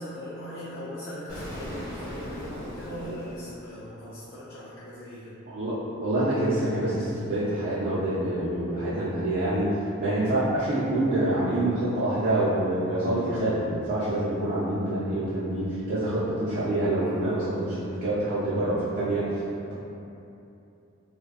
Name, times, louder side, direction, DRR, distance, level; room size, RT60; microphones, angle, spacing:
voice 1, 0.0-5.4 13.0-13.2 17.0-17.2, equal, 60° left, -7 dB, 0.3 m, -39 dB
Explosion, 1.3-4.2, equal, 15° left, 0.7 m, -39 dB
voice 2, 6.0-19.3, right 1 dB, 45° right, -10 dB, 0.4 m, -26 dB
2.6 x 2.2 x 2.3 m, 2.7 s
head